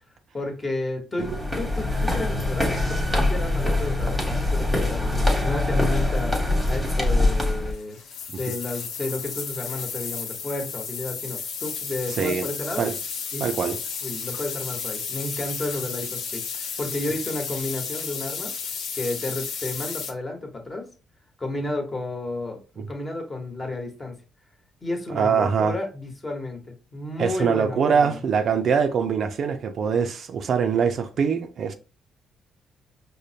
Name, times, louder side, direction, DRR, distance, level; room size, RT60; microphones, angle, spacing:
voice 1, 0.3-8.0 8.4-12.9 13.3-13.5 14.0-20.9 21.4-24.1 24.8-26.6 26.9-28.2, left 2 dB, 25° left, 1.1 m, -32 dB
sound 1, 1.2-7.7, left 2 dB, 5° right, 1.2 m, -23 dB
sound 2, 7.7-20.1, left 6 dB, 75° left, 0.7 m, -33 dB
voice 2, 13.4-13.8 22.8-22.9 25.1-25.8 27.2-31.7, right 6 dB, 60° right, 0.4 m, -23 dB
5.0 x 2.1 x 2.7 m
cardioid pair, 90°, 0 cm